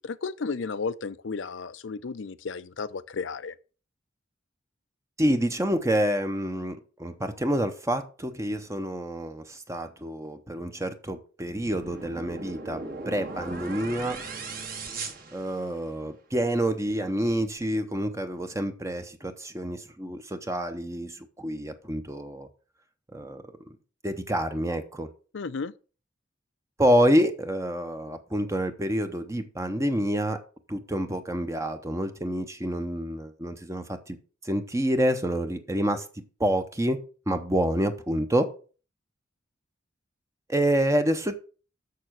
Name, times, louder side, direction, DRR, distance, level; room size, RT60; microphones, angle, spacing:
voice 1, 0.0-3.5 25.3-25.7, left 4 dB, 80° left, 0.6 m, -33 dB
voice 2, 5.2-14.2 15.3-22.5 23.1-23.4 24.0-25.1 26.8-30.4 30.7-34.2 34.4-36.0 36.4-37.0 37.3-38.5 40.5-41.3, equal, 15° right, 0.7 m, -27 dB
sound 1, 11.5-16.1, right 3 dB, 50° right, 1.7 m, -38 dB
6.9 x 6.7 x 6.3 m
head